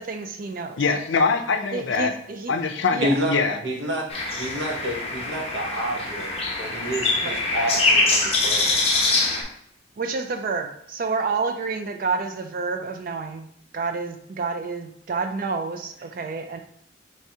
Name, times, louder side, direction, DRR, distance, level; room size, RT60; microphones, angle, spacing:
voice 1, 0.0-0.8 1.7-2.5 2.9-3.1 7.2-7.4 10.0-13.5 13.7-16.6, right 4 dB, 45° right, 6 dB, 0.3 m, -29 dB
voice 2, 0.8-2.1 2.5-3.6, left 4 dB, 70° left, 6 dB, 0.5 m, -23 dB
voice 3, 3.0-3.3 3.6-8.8, equal, 60° right, 0 dB, 0.9 m, -29 dB
sound 1, 4.1-9.4, left 3 dB, 30° left, 0.8 m, -23 dB
4.7 x 3.2 x 2.8 m, 0.69 s
head